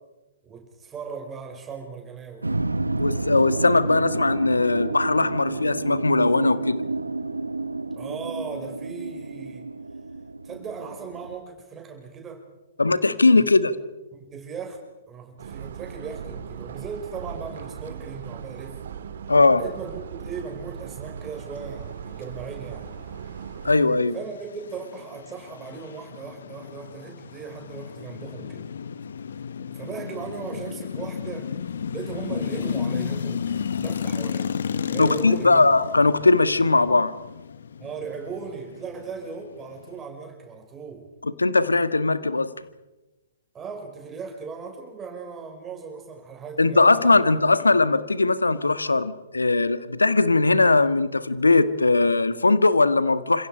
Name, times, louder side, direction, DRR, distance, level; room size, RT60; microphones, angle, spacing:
voice 1, 0.4-2.6 8.0-9.7 10.4-12.4 13.3-13.7 14.1-18.8 19.5-22.9 24.1-28.7 29.7-31.5 31.9-34.6 34.9-35.7 37.8-41.1 43.5-47.2 47.5-47.6, right 5 dB, 20° right, 2 dB, 5.5 m, -38 dB
sound 1, 2.4-11.3, right 2 dB, 90° right, 1.2 m, -30 dB
voice 2, 3.0-6.8 12.8-13.7 19.3-19.6 23.6-24.1 35.0-37.1 41.2-42.5 46.6-53.5, left 3 dB, 85° left, 12 dB, 1.7 m, -19 dB
sound 2, 15.4-23.8, right 7 dB, 60° right, 1.9 m, -38 dB
sound 3, 23.3-40.0, left 7 dB, 65° left, 1.1 m, -33 dB
29.5 x 27.0 x 5.0 m, 1.1 s
figure-of-eight pair, 120°, 0 cm